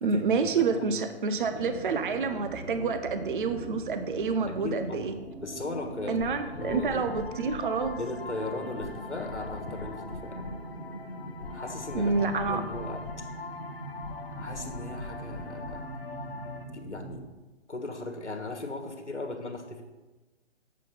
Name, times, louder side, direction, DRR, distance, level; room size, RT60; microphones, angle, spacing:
voice 1, 0.0-5.2 6.1-8.0 11.9-12.6, right 4 dB, 50° right, 9 dB, 0.6 m, -28 dB
voice 2, 0.6-0.9 4.5-7.0 8.0-10.4 11.5-12.1 12.5-13.0 14.4-15.9 16.7-17.2 17.7-19.8, left 2 dB, 90° left, 3 dB, 1.4 m, -37 dB
sound 1, 1.3-17.2, right 1 dB, 10° right, 0.9 m, -42 dB
sound 2, 6.2-16.6, left 4 dB, 55° left, 1.0 m, -42 dB
7.4 x 5.5 x 5.4 m, 1.2 s
figure-of-eight pair, 145°, 34 cm